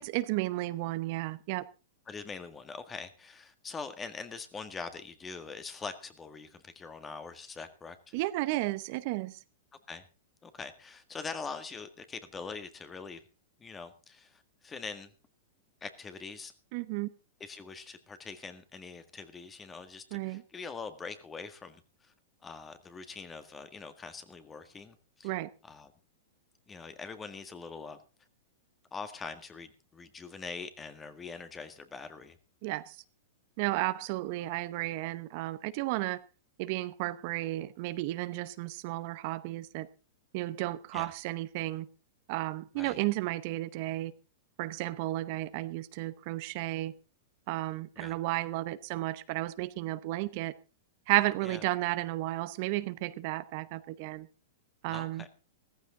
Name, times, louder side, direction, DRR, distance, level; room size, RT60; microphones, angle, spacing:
voice 1, 0.0-1.6 8.1-9.4 16.7-17.1 20.1-20.4 25.2-25.5 32.6-33.0 33.6-36.2 36.6-39.9 40.3-41.9 42.3-44.1 44.6-46.9 47.5-50.5 51.1-54.3 54.8-55.2, right 18 dB, 50° right, 0.9 m, -33 dB
voice 2, 2.1-8.1 9.9-10.0 10.4-13.2 13.6-15.1 15.8-16.5 17.4-22.1 22.4-25.3 25.6-25.9 26.7-28.0 28.9-32.4 40.9-41.1 42.8-43.0 48.0-48.2 51.4-51.6 54.9-55.3, left 5 dB, 20° left, 1.8 m, -43 dB
15.0 x 14.5 x 3.9 m
hypercardioid pair, 120°, 0 cm